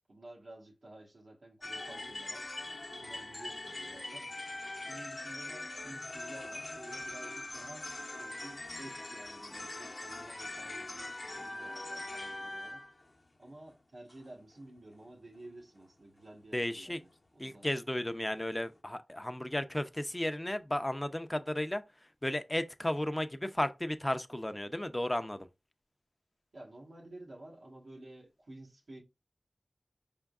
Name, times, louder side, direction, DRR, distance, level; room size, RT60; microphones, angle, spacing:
voice 1, 0.1-2.5 3.0-4.3 4.9-7.9 8.2-13.0 13.4-17.7 26.5-29.0, right 1 dB, 85° right, 1.2 m, -52 dB
sound 1, 1.6-13.2 13.5-13.7 14.1-14.3 14.6-14.7 15.0-15.1 15.4-15.5 15.8-15.9 16.3-16.4 16.7-16.8 17.1-17.2 17.4-17.6 18.0-18.1 18.3-18.4 18.7-18.8, left 2 dB, 50° left, 0.8 m, -42 dB
voice 2, 16.5-17.0 17.4-25.5, left 1 dB, 20° left, 0.5 m, -34 dB
5.0 x 3.6 x 2.3 m
wide cardioid pair, 45°, 0 cm